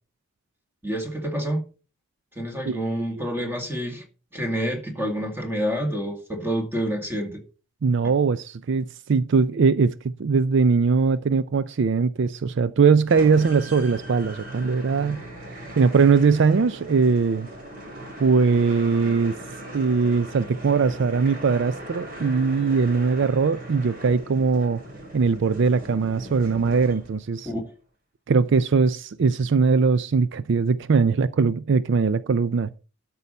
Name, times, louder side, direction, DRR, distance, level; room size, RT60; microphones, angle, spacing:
voice 1, 0.8-1.7 2.4-4.0 4.3-7.4 27.5-27.6, equal, 10° right, 2.0 m, -28 dB
voice 2, 7.8-15.2 15.8-17.5 18.2-19.4 19.7-24.8 25.1-27.5 28.3-32.7, right 5 dB, 60° right, 0.4 m, -21 dB
sound 1, 13.1-27.4, right 1 dB, 45° right, 4.1 m, -39 dB
12.5 x 5.5 x 5.3 m
head